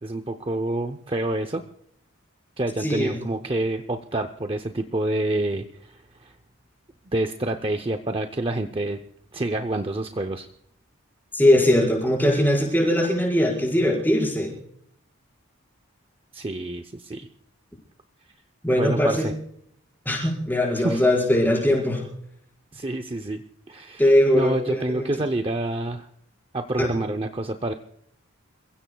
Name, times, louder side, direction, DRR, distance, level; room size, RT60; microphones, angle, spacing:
voice 1, 0.0-1.6 2.6-6.3 7.1-9.0 9.3-10.5 16.3-17.3 18.7-19.3 20.8-21.0 22.7-26.1 26.5-27.7, right 2 dB, 25° right, 7 dB, 0.6 m, -28 dB
voice 2, 2.8-3.2 11.3-14.6 18.6-19.3 20.0-22.1 24.0-25.1 26.8-26.9, left 1 dB, 10° left, -1 dB, 5.2 m, -21 dB
29.5 x 16.0 x 2.3 m, 0.70 s
head